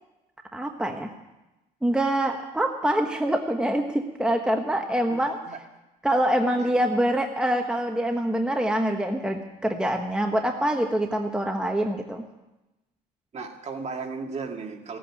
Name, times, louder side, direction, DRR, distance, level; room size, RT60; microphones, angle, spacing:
voice 1, 0.5-1.1 1.8-5.4 6.0-12.2, right 1 dB, 5° right, 3 dB, 1.2 m, -25 dB
voice 2, 5.1-5.6 6.6-6.7 13.3-15.0, right 4 dB, 40° right, 3 dB, 2.2 m, -35 dB
16.5 x 8.6 x 9.9 m, 1.0 s
cardioid pair, 110°, 17 cm